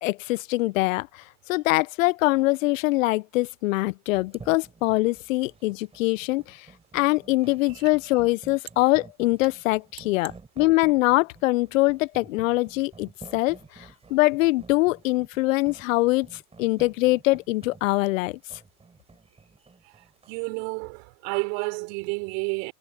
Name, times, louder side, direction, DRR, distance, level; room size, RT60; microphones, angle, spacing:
voice 1, 0.0-1.2 1.5-6.7 6.9-18.4, left 20 dB, 55° left, 1.3 m, -23 dB
sound 1, 4.1-20.4, right 4 dB, 10° right, 7.1 m, -50 dB
voice 2, 19.8-22.7, right 40 dB or more, 50° right, 6.1 m, -31 dB
hypercardioid pair, 100°, 47 cm